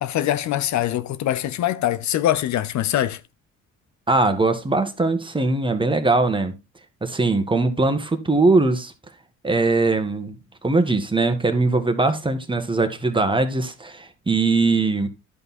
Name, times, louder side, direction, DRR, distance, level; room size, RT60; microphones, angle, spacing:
voice 1, 0.0-3.2, left 12 dB, 65° left, 0.7 m, -23 dB
voice 2, 4.1-6.5 7.0-8.9 9.4-10.4 10.6-15.1, right 3 dB, 15° right, 1.6 m, -21 dB
11.0 x 5.3 x 4.2 m
cardioid pair, 90°, 31 cm